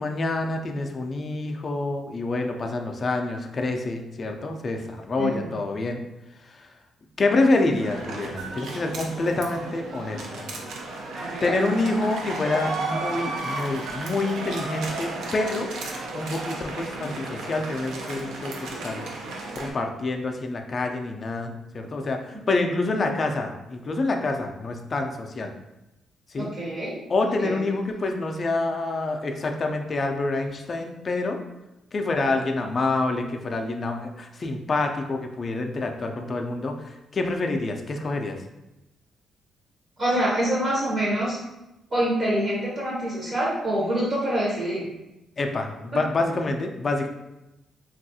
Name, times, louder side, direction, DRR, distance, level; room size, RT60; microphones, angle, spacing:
voice 1, 0.0-6.0 7.2-10.4 11.4-15.7 16.1-19.0 19.5-25.5 26.3-26.5 27.1-31.4 31.9-36.7 37.1-38.4 45.4-47.1, left 2 dB, 30° left, 3 dB, 0.3 m, -27 dB
voice 2, 5.2-5.5 11.1-11.5 22.6-22.7 26.4-26.9 27.4-27.6 40.0-41.4 41.9-44.9 45.9-46.0, right 1 dB, 35° right, -6 dB, 0.7 m, -26 dB
sound 1, 7.5-19.7, right 2 dB, 85° right, 0.5 m, -34 dB
3.4 x 2.3 x 2.7 m, 0.94 s
cardioid pair, 145°, 0 cm